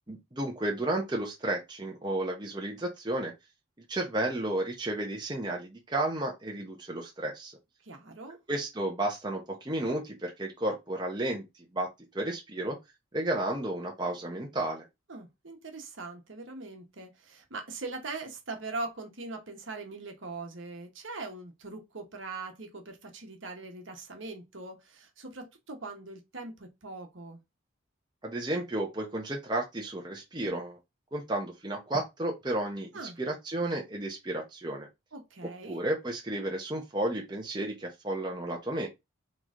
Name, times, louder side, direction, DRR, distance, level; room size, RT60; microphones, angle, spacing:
voice 1, 0.1-3.3 3.9-7.5 8.5-12.8 13.1-14.8 28.2-30.8 31.1-32.9 33.2-34.9 35.7-38.9, right 1 dB, 20° right, 0.8 m, -32 dB
voice 2, 7.8-8.4 15.1-27.4 32.9-33.2 35.1-35.8, right 3 dB, 65° right, 1.2 m, -41 dB
3.8 x 3.1 x 3.7 m
head